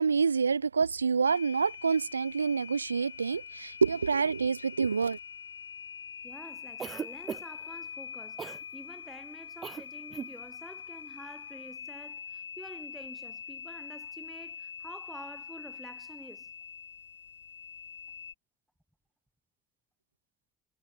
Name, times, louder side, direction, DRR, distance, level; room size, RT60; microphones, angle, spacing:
voice 1, 0.0-5.2, right 5 dB, 85° right, 0.3 m, -27 dB
sound 1, 1.3-18.3, left 7 dB, 85° left, 1.1 m, -44 dB
voice 2, 6.2-8.5 8.7-16.5, equal, ahead, 5.6 m, -49 dB
Cough, 6.8-7.7 8.4-8.6 9.6-9.8 10.1-10.3, right 6 dB, 35° right, 5.1 m, -38 dB
figure-of-eight pair, 55°, 0 cm